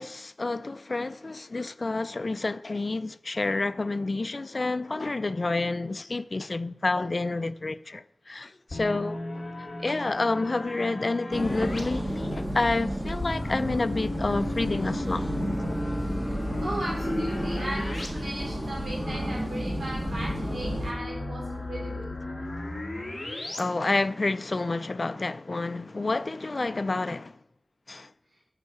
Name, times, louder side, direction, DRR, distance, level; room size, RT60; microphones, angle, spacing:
voice 1, 0.0-9.2 9.8-15.3 23.6-27.4 27.9-28.1, left 3 dB, 40° left, 0.4 m, -29 dB
sound 1, 8.7-11.8 13.2-18.1 18.4-18.5 20.0-23.6, left 1 dB, 25° left, 2.0 m, -36 dB
sound 2, 11.3-20.9, equal, 15° right, 1.7 m, -31 dB
voice 2, 16.2-22.1, right 1 dB, 70° right, 3.0 m, -36 dB
9.0 x 6.3 x 7.1 m
wide cardioid pair, 100°, 0 cm